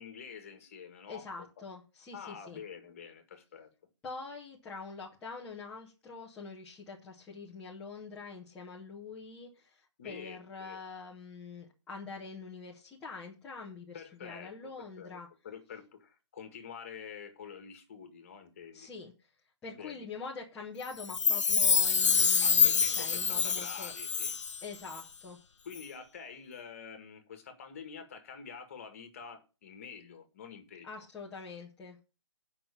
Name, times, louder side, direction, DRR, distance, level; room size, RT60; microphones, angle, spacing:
voice 1, 0.0-1.5 2.1-3.7 10.0-10.8 13.9-14.7 15.0-15.2 15.4-18.9 19.7-20.1 22.4-24.4 25.7-30.9, left 6 dB, 30° left, 1.9 m, -47 dB
voice 2, 1.1-2.6 4.0-15.3 18.7-19.1 19.6-23.9 24.6-25.4 30.8-32.0, left 4 dB, 5° left, 0.9 m, -45 dB
Chime, 21.0-24.6 24.9-25.0, left 6 dB, 90° left, 0.7 m, -26 dB
9.2 x 5.7 x 6.9 m
hypercardioid pair, 175°, 15 cm